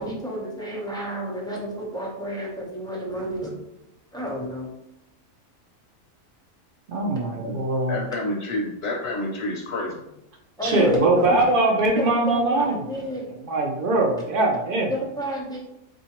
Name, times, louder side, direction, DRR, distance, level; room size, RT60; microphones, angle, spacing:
voice 1, 0.0-3.5 4.1-4.7 10.6-11.5 12.0-13.3 14.9-15.6, equal, 5° left, -3 dB, 0.4 m, -30 dB
voice 2, 6.9-8.0 10.6-12.9 13.4-14.9, right 2 dB, 60° right, 1 dB, 0.5 m, -22 dB
voice 3, 7.9-10.0, left 1 dB, 65° left, -1 dB, 0.7 m, -29 dB
3.9 x 2.5 x 2.9 m, 0.87 s
omnidirectional pair, 1.4 m